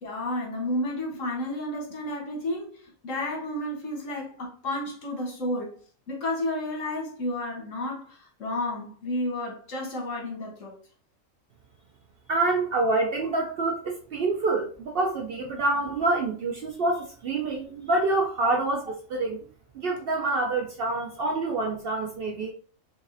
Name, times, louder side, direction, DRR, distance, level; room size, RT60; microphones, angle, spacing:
voice 1, 0.0-5.8 6.1-10.8 19.4-19.5, left 1 dB, 75° left, 1.4 m, -31 dB
voice 2, 12.3-19.4 19.7-22.5, right 2 dB, 65° right, 0.6 m, -27 dB
3.6 x 3.2 x 2.5 m
omnidirectional pair, 1.4 m